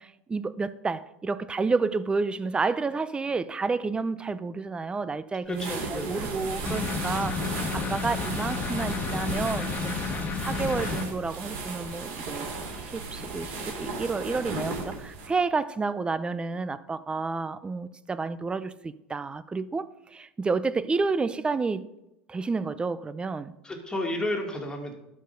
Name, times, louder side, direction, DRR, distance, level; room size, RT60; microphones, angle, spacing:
voice 1, 0.0-7.4 7.7-12.5 12.8-21.9 22.3-23.5, right 4 dB, 15° right, 0.5 m, -30 dB
voice 2, 5.5-6.3 23.6-24.9, left 1 dB, 15° left, 2.1 m, -32 dB
sound 1, 5.5-15.3, right 3 dB, 65° right, 3.1 m, -35 dB
sound 2, 6.7-11.0, left 5 dB, 30° left, 1.5 m, -31 dB
11.5 x 4.6 x 5.3 m
hypercardioid pair, 100°, 6 cm